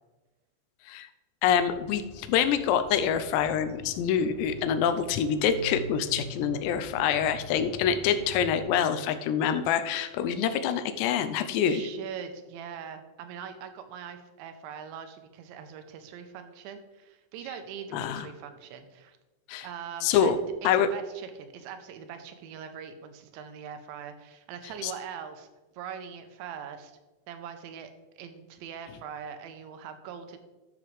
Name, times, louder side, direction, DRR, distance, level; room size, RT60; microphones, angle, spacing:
voice 1, 1.4-11.8 17.9-18.3 19.5-19.7 20.0-20.4 20.6-20.9 24.8-24.9, left 8 dB, 80° left, 10 dB, 2.7 m, -26 dB
sound 1, 1.5-8.6, left 1 dB, 60° left, 2.0 m, -44 dB
voice 2, 11.5-19.2 19.6-25.5 25.7-27.0 27.3-27.9 28.2-30.4, right 7 dB, 85° right, 8 dB, 3.1 m, -42 dB
12.0 x 7.2 x 3.3 m, 1.1 s
omnidirectional pair, 5.3 m